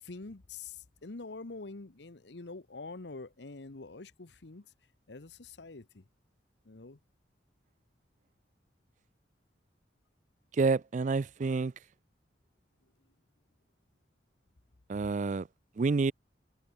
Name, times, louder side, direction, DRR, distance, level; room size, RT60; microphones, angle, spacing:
voice 1, 0.0-4.7 5.1-6.1 6.6-7.0, left 3 dB, 70° left, 1.1 m, -45 dB
voice 2, 10.6-11.7 14.9-15.5 15.8-16.1, right 4 dB, 45° right, 0.4 m, -28 dB
head